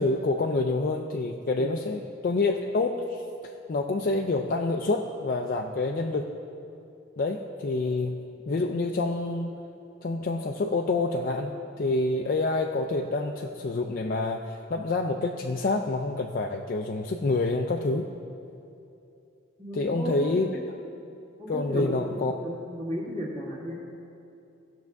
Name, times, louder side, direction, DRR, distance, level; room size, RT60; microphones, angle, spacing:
voice 1, 0.0-6.3 7.2-8.2 8.5-9.6 10.0-18.1 19.7-20.5 21.5-22.3, left 3 dB, 45° left, 2 dB, 0.4 m, -27 dB
voice 2, 19.6-20.4 21.4-23.7, equal, 30° right, -5 dB, 2.0 m, -34 dB
16.0 x 6.1 x 3.5 m, 2.7 s
head